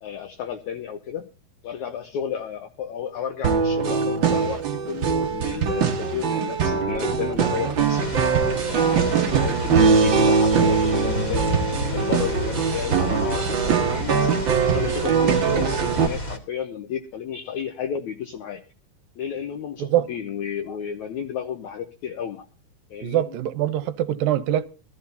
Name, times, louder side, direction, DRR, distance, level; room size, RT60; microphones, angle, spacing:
voice 1, 0.0-1.3 1.6-8.1 8.7-11.5 11.9-14.3 14.6-18.6 19.2-22.5 22.9-23.2, left 8 dB, 70° left, 1.9 m, -32 dB
sound 1, 3.4-16.1, right 6 dB, 60° right, 1.2 m, -22 dB
sound 2, 7.8-16.4, left 1 dB, 30° left, 2.0 m, -31 dB
voice 2, 23.0-24.7, right 12 dB, 80° right, 2.4 m, -23 dB
20.5 x 14.0 x 2.7 m
omnidirectional pair, 4.2 m